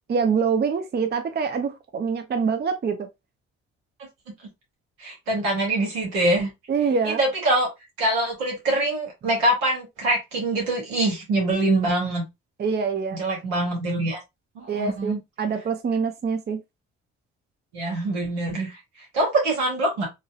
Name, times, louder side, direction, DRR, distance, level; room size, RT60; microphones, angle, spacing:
voice 1, 0.1-3.1 6.7-7.2 12.6-13.2 14.7-16.6, right 5 dB, 35° right, 0.6 m, -25 dB
voice 2, 5.0-6.5 7.0-7.7 8.0-12.2 13.1-14.2 14.5-15.2 17.7-18.8 19.1-20.1, right 2 dB, 90° right, 1.3 m, -24 dB
2.9 x 2.6 x 2.4 m
hypercardioid pair, 55°, 31 cm